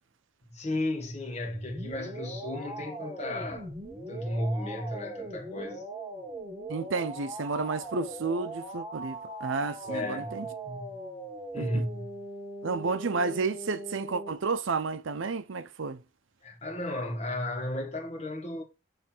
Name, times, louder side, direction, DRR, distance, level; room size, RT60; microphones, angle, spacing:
voice 1, 0.5-5.8 9.8-11.0 11.5-12.1 16.4-18.6, left 1 dB, 35° left, 1.7 m, -34 dB
sound 1, 1.5-14.3, right 2 dB, 20° right, 1.5 m, -40 dB
voice 2, 6.7-10.5 11.6-11.8 12.6-16.0, right 4 dB, 80° right, 0.6 m, -31 dB
7.8 x 3.3 x 4.4 m
head